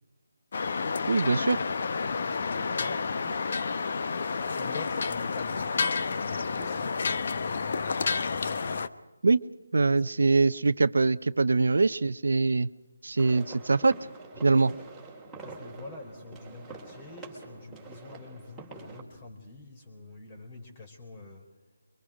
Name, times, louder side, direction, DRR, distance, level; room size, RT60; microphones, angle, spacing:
sound 1, 0.5-8.9, left 4 dB, 50° left, 0.9 m, -30 dB
voice 1, 1.1-1.6 9.2-9.4 9.7-12.7 13.0-14.0 14.4-14.7, right 3 dB, 65° right, 14 dB, 0.6 m, -23 dB
voice 2, 2.1-3.5 4.5-7.0 9.9-10.0 14.3-14.9 15.4-21.5, left 2 dB, 25° left, 4 dB, 4.1 m, -46 dB
sound 2, 13.2-19.0, right 3 dB, 5° right, 3.0 m, -46 dB
24.0 x 24.0 x 5.0 m, 1.1 s
figure-of-eight pair, 160°, 0 cm